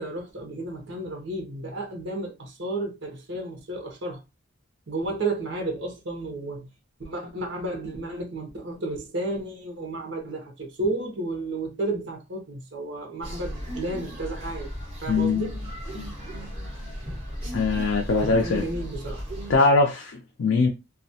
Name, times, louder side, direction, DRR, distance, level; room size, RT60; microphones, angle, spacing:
voice 1, 0.0-4.2 4.9-6.7 7.0-14.7 15.0-15.6 18.3-19.2, right 2 dB, 60° right, 0.7 m, -32 dB
sound 1, 13.2-19.6, equal, 25° right, 1.3 m, -35 dB
voice 2, 15.1-15.5 15.9-16.1 17.5-18.6 19.5-20.7, left 3 dB, 65° left, 0.4 m, -22 dB
2.3 x 2.1 x 2.7 m
head